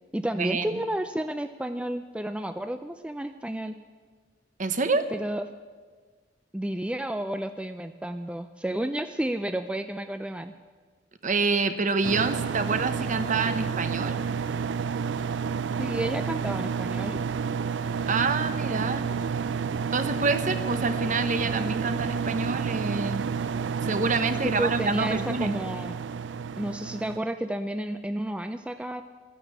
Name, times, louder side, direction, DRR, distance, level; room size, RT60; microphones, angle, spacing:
voice 1, 0.1-3.8 5.1-5.5 6.5-10.5 15.8-17.2 24.4-26.0 26.6-29.0, right 1 dB, 5° right, 8 dB, 0.4 m, -31 dB
voice 2, 4.6-5.1 11.2-14.1 18.1-19.0 19.9-23.3 23.8-25.5, right 4 dB, 45° right, 10 dB, 0.9 m, -27 dB
sound 1, 12.0-27.2, right 6 dB, 80° right, 0.4 m, -30 dB
13.0 x 11.0 x 8.0 m, 1.5 s
head